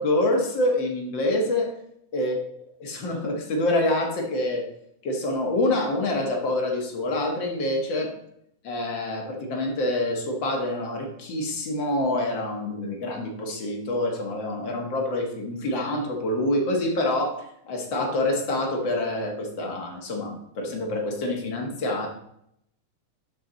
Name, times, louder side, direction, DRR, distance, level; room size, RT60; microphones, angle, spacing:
voice 1, 0.0-1.7 2.1-2.4 2.8-4.7 5.0-8.1 8.6-22.1, left 1 dB, 50° left, 1 dB, 1.4 m, -26 dB
11.5 x 4.5 x 3.9 m, 0.74 s
omnidirectional pair, 3.9 m